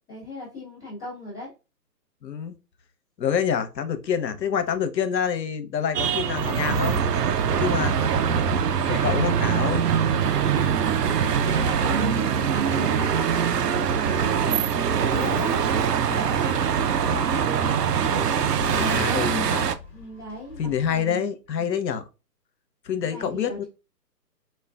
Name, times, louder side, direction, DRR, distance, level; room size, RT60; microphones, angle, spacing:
voice 1, 0.1-1.5 10.4-10.9 11.3-14.7 15.0-19.2 19.9-21.3 23.0-23.6, left 1 dB, 5° left, 0.7 m, -37 dB
voice 2, 2.2-2.5 3.2-7.0 7.5-7.9 8.9-9.8 15.2-15.5 18.7-19.6 20.6-22.0 22.8-23.6, left 7 dB, 85° left, 0.7 m, -27 dB
sound 1, 5.9-19.7, right 7 dB, 70° right, 0.5 m, -23 dB
sound 2, 14.9-21.0, left 4 dB, 35° left, 1.1 m, -42 dB
4.3 x 2.3 x 2.3 m
hypercardioid pair, 150°, 49 cm